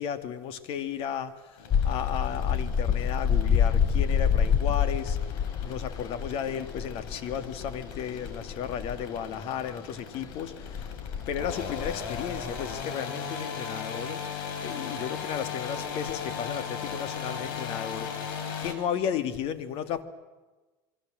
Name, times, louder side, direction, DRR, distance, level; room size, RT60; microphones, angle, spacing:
voice 1, 0.0-10.9 11.3-14.2 14.6-18.2 18.6-20.0, left 8 dB, 55° left, 2.2 m, -34 dB
sound 1, 1.6-18.7, left 6 dB, 75° left, 4.8 m, -38 dB
sound 2, 1.7-9.7 10.3-12.8, left 7 dB, 30° left, 1.2 m, -28 dB
27.0 x 23.0 x 7.6 m
supercardioid pair, 105°, 12 cm